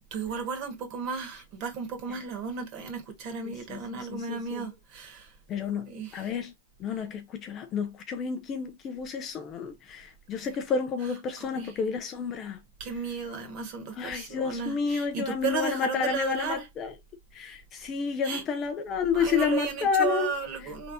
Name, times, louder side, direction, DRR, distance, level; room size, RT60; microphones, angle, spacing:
voice 1, 0.1-5.3 5.9-6.3 6.9-7.0 11.4-11.7 12.8-16.7 18.2-18.4 19.1-20.9, right 6 dB, 35° right, 1.5 m, -34 dB
voice 2, 3.7-4.6 5.5-6.5 6.8-12.6 14.0-16.9 17.3-20.3, left 6 dB, 20° left, 0.4 m, -30 dB
4.0 x 3.4 x 2.7 m
hypercardioid pair, 160°, 0 cm